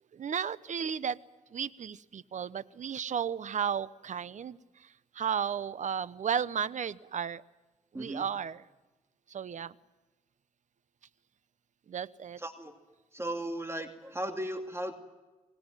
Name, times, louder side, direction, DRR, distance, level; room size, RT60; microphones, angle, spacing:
voice 1, 0.1-1.2 1.5-7.4 7.9-8.6 9.3-9.7 11.9-12.4, right 7 dB, 55° right, 17 dB, 0.9 m, -34 dB
voice 2, 7.9-8.3 12.4-12.7 13.1-14.9, right 1 dB, 15° right, 6 dB, 2.6 m, -36 dB
25.5 x 19.5 x 9.1 m, 1.2 s
cardioid pair, 75°, 15 cm